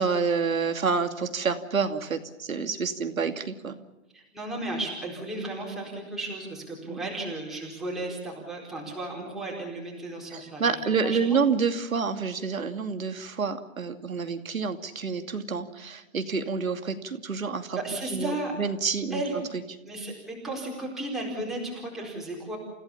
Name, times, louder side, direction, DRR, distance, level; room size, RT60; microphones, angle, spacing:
voice 1, 0.0-3.8 6.9-7.0 10.3-17.8 18.1-19.4, right 5 dB, 90° right, 7 dB, 2.7 m, -28 dB
voice 2, 4.1-10.7 11.0-11.4 17.7-18.5 19.1-19.3 19.8-22.6, right 2 dB, ahead, -4 dB, 4.5 m, -34 dB
29.5 x 16.0 x 7.2 m, 1.0 s
hypercardioid pair, 160°, 40 cm